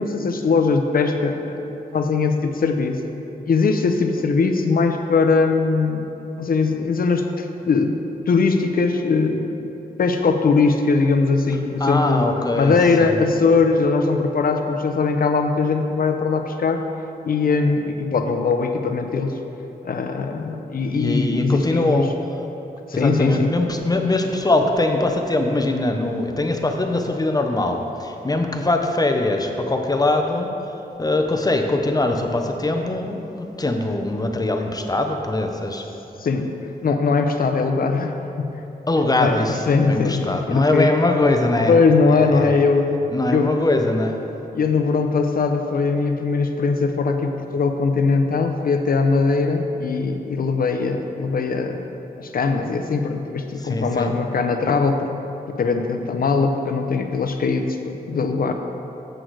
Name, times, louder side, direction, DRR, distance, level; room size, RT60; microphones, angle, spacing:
voice 1, 0.0-1.6 1.9-3.0 3.4-6.1 6.4-8.0 8.3-9.7 10.0-12.2 12.5-16.8 17.2-19.4 19.8-22.0 22.9-23.5 36.2-36.5 36.8-38.1 38.4-38.6 39.2-39.4 39.7-40.9 41.7-42.9 43.3-43.5 44.5-51.8 52.2-55.1 55.5-58.5, left 4 dB, 65° left, 5 dB, 0.6 m, -20 dB
voice 2, 11.8-12.7 13.0-13.2 20.9-22.1 22.9-30.5 31.0-35.8 38.9-41.7 43.1-44.2 53.6-54.1, left 2 dB, 25° left, 4 dB, 0.7 m, -22 dB
7.8 x 6.1 x 4.7 m, 3.0 s
cardioid pair, 80°, 16 cm